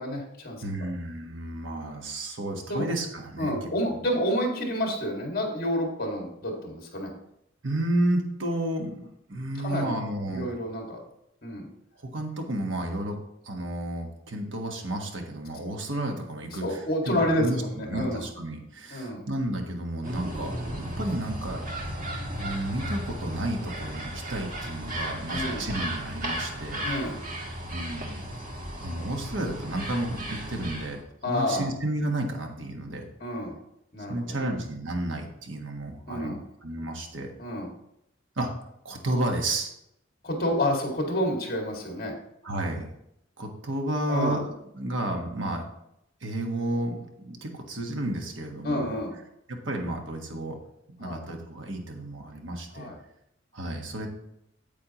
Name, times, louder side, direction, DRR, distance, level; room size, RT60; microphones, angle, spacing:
voice 1, 0.0-0.6 2.7-2.9 3.4-7.1 9.6-10.0 10.3-11.0 11.4-11.7 16.5-18.2 18.9-19.2 25.3-25.7 26.8-27.2 31.2-31.6 33.2-33.6 33.9-34.5 36.1-36.4 37.4-37.7 40.2-42.1 44.1-44.4 48.6-49.1 51.0-51.2 52.7-53.0, left 1 dB, 50° left, 0 dB, 2.1 m, -29 dB
voice 2, 0.6-3.7 7.6-10.5 12.0-13.2 13.4-20.5 21.0-21.7 22.4-26.9 27.7-28.2 28.8-31.0 31.3-33.1 34.1-36.3 36.6-37.3 38.4-38.5 38.8-39.7 42.4-42.9 43.4-45.6 46.2-48.9 49.5-50.6 51.0-52.9 53.5-54.1, right 1 dB, 75° right, 3 dB, 1.4 m, -31 dB
sound 1, 20.0-31.0, equal, 45° right, 1.5 m, -35 dB
8.7 x 8.4 x 3.0 m, 0.80 s
head